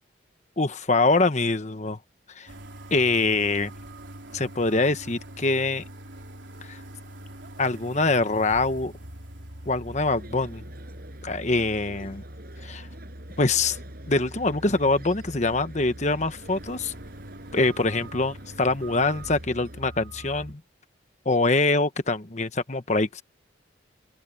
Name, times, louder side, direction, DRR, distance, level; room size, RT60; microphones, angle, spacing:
voice 1, 0.6-2.0 2.3-2.5 2.9-3.7 4.3-5.8 6.7-6.8 7.6-8.9 9.7-10.6 11.2-12.2 12.6-12.9 13.4-13.8 14.1-16.9 17.5-20.6 21.2-23.2, left 3 dB, 40° left, 1.1 m, -24 dB
sound 1, 2.5-20.5, right 1 dB, 70° right, 4.0 m, -43 dB
sound 2, 10.1-19.8, right 1 dB, 50° right, 5.7 m, -48 dB
open air
head